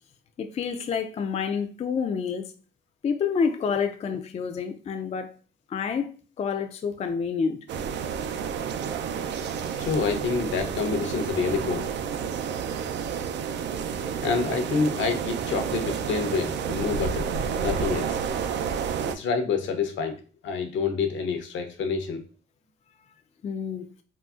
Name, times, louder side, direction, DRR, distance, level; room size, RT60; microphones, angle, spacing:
voice 1, 0.4-2.4 3.0-5.3 5.7-6.1 6.4-7.6 23.4-23.9, left 6 dB, 35° left, 0.3 m, -28 dB
sound 1, 7.7-19.2, right 7 dB, 65° right, 0.4 m, -30 dB
voice 2, 9.8-11.9 14.2-18.2 19.1-20.2 20.4-22.2, left 5 dB, 70° left, 0.7 m, -27 dB
3.8 x 2.0 x 2.4 m
cardioid pair, 90°, 20 cm